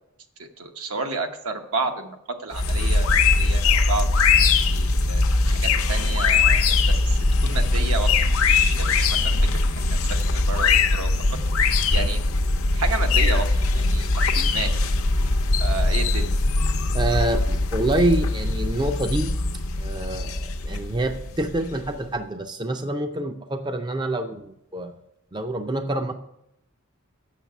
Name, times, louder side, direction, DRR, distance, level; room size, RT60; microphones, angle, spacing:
voice 1, 0.4-4.1 4.7-9.4 9.7-12.2 12.7-14.8 15.6-16.3, right 3 dB, 80° right, 5 dB, 1.1 m, -32 dB
sound 1, 2.5-22.0, left 3 dB, 70° left, 0.7 m, -21 dB
voice 2, 16.9-19.3 19.8-24.9 25.3-26.1, right 1 dB, 20° right, 7 dB, 0.5 m, -26 dB
7.5 x 6.6 x 8.1 m, 0.81 s
head